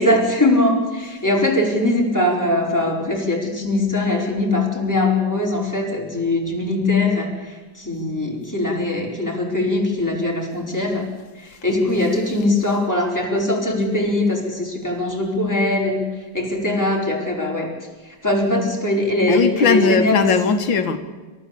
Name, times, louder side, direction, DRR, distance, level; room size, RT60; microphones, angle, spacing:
voice 1, 0.0-11.1 11.3-16.0 16.3-17.7 18.0-20.3, left 2 dB, 10° left, 4.7 m, -21 dB
voice 2, 19.3-21.0, left 5 dB, 85° left, 2.1 m, -18 dB
28.0 x 14.5 x 8.4 m
omnidirectional pair, 2.0 m